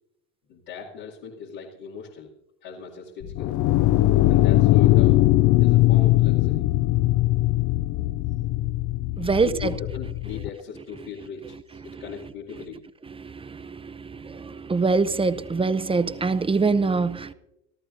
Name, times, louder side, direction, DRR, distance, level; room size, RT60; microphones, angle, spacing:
voice 1, 0.5-2.3 2.6-3.5 4.3-5.2 5.6-6.7 7.9-8.1 8.5-9.0 9.3-12.8, left 6 dB, 80° left, 2.5 m, -38 dB
sound 1, 3.2-10.5, left 16 dB, 50° left, 0.5 m, -20 dB
voice 2, 9.2-9.7 13.2-17.3, right 4 dB, 15° right, 0.6 m, -24 dB
25.5 x 14.0 x 2.6 m
supercardioid pair, 90°, 39 cm